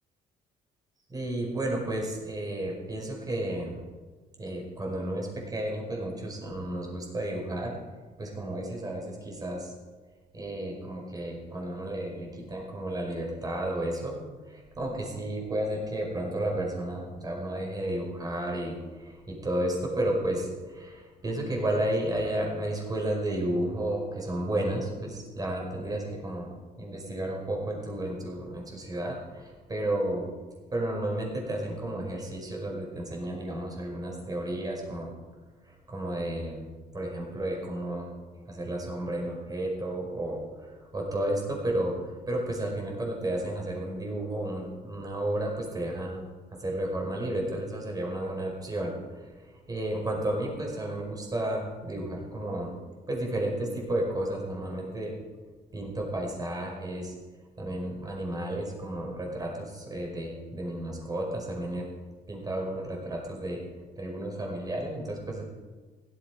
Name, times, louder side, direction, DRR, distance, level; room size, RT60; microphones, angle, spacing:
voice 1, 1.1-3.8 4.4-7.8 8.2-9.7 10.3-14.2 14.5-26.5 26.8-30.3 30.7-35.1 35.6-36.6 36.9-46.2 46.6-52.7 53.1-55.1 55.7-57.1 57.6-61.9 62.3-63.6 64.0-65.4, right 1 dB, 20° right, 0 dB, 5.1 m, -32 dB
16.0 x 13.0 x 5.1 m, 1.3 s
cardioid pair, 110°, 17 cm